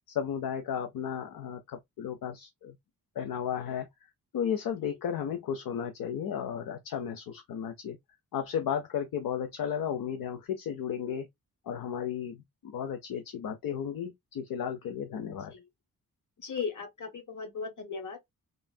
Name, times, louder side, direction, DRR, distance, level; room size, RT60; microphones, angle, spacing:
voice 1, 0.0-2.8 3.2-3.9 4.3-8.0 8.3-11.3 11.6-15.5, left 8 dB, 75° left, 0.6 m, -34 dB
voice 2, 16.4-18.3, left 5 dB, 55° left, 1.2 m, -37 dB
3.1 x 2.6 x 2.2 m
wide cardioid pair, 140°, 35 cm